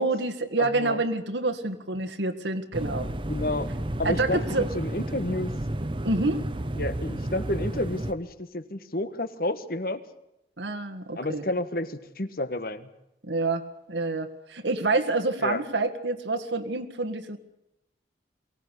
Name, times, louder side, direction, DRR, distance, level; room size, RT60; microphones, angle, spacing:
voice 1, 0.0-3.1 4.0-4.7 6.0-6.5 10.6-11.4 13.2-17.4, right 2 dB, 85° right, 5 dB, 1.9 m, -27 dB
voice 2, 0.6-1.0 3.3-3.7 4.0-5.5 6.8-10.0 11.2-12.9 15.4-15.6, left 1 dB, 55° left, 12 dB, 1.5 m, -30 dB
sound 1, 2.7-8.1, right 1 dB, 30° right, 1.0 m, -32 dB
23.0 x 18.0 x 8.3 m, 0.87 s
head